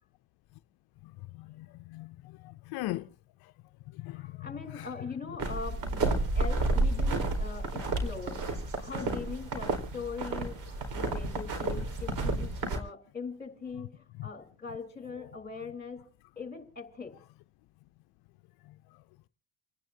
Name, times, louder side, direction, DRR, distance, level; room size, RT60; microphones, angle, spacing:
voice 1, 1.4-2.1 2.4-3.1 4.0-4.5 4.7-4.9, left 18 dB, 70° left, 0.6 m, -39 dB
voice 2, 4.1-16.0 16.4-17.1, left 5 dB, 25° left, 4.0 m, -41 dB
sound 1, 5.4-12.8, right 2 dB, 60° right, 4.4 m, -31 dB
30.0 x 10.5 x 2.7 m
supercardioid pair, 70°, 39 cm